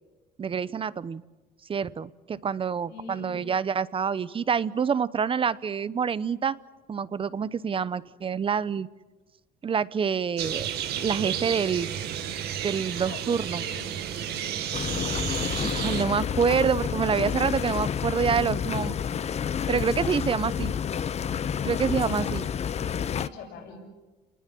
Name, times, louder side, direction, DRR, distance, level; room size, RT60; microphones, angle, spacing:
voice 1, 0.4-1.2 1.7-6.6 6.9-8.9 9.6-10.7 11.0-11.9 12.6-13.6 15.7-19.0 19.7-20.7 21.6-22.5, right 6 dB, 30° right, 18 dB, 0.8 m, -27 dB
voice 2, 2.9-3.5 13.0-13.2 13.5-14.0 14.3-14.6 21.8-22.3 23.0-23.8, left 4 dB, 85° left, 1 dB, 6.8 m, -43 dB
sound 1, 10.4-16.0, right 9 dB, 75° right, 2.1 m, -32 dB
sound 2, 14.7-23.3, left 8 dB, 40° left, 0.8 m, -29 dB
30.0 x 20.0 x 7.7 m, 1.2 s
cardioid pair, 110°, 17 cm